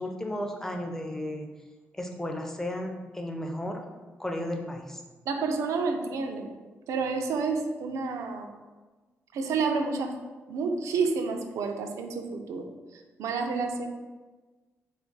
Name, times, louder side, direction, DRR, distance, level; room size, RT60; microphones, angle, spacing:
voice 1, 0.0-1.5 1.9-3.8 4.2-5.0, left 1 dB, 10° left, 3 dB, 0.4 m, -34 dB
voice 2, 5.3-6.5 6.9-8.5 9.3-10.1 10.5-12.7 12.9-13.9, right 4 dB, 90° right, 5 dB, 0.3 m, -29 dB
2.4 x 2.3 x 3.8 m, 1.3 s
cardioid pair, 95°, 5 cm